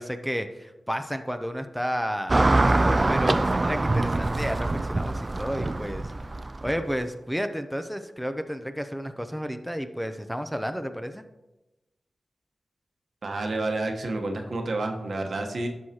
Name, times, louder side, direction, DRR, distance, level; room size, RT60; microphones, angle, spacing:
voice 1, 0.0-6.1 6.6-11.2, equal, ahead, 8 dB, 0.7 m, -32 dB
Car passing by / Traffic noise roadway noise, 2.3-6.9, right 2 dB, 40° right, 0.4 m, -24 dB
voice 2, 13.2-15.7, right 2 dB, 70° right, 3 dB, 1.1 m, -29 dB
11.0 x 6.2 x 2.9 m, 1.0 s
cardioid pair, 45°, 0 cm